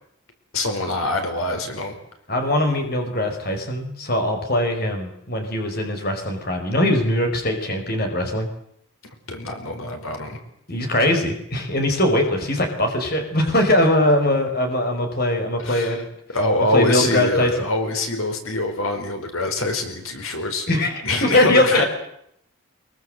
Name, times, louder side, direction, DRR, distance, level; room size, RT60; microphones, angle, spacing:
voice 1, 0.5-2.0 9.3-10.4 15.6-16.0 16.3-20.7 21.0-21.8, left 2 dB, 85° left, 5 dB, 4.9 m, -24 dB
voice 2, 2.3-8.5 10.7-16.1 16.5-17.5 20.7-21.8, left 1 dB, 45° left, 4 dB, 5.1 m, -21 dB
24.0 x 23.0 x 7.9 m, 0.73 s
head